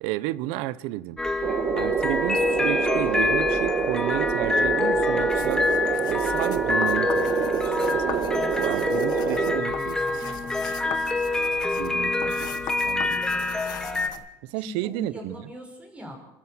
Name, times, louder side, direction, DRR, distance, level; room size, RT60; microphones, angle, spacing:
voice 1, 0.0-1.2 1.8-5.6 6.0-10.0 11.8-13.2 14.4-15.4, right 16 dB, 70° right, 18 dB, 0.9 m, -32 dB
sound 1, 1.2-14.1, left 3 dB, 5° left, 2.0 m, -26 dB
sound 2, 1.4-9.6, right 8 dB, 40° right, 1.5 m, -27 dB
sound 3, 5.3-14.2, left 11 dB, 45° left, 1.4 m, -40 dB
voice 2, 8.3-10.7 14.6-16.1, left 1 dB, 10° right, 2 dB, 5.6 m, -43 dB
27.0 x 13.0 x 7.9 m, 0.89 s
cardioid pair, 150°, 10 cm